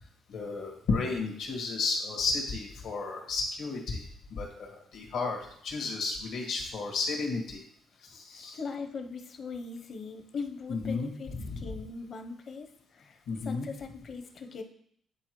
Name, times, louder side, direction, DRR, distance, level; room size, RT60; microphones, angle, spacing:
voice 1, 0.3-4.0 4.3-7.6 8.0-8.6 10.7-11.1 11.4-11.6 13.3-13.7, left 4 dB, 85° left, 0 dB, 1.8 m, -33 dB
voice 2, 8.5-14.6, left 4 dB, 55° left, 5 dB, 0.8 m, -40 dB
9.9 x 4.3 x 3.1 m, 0.67 s
cardioid pair, 90°, 0 cm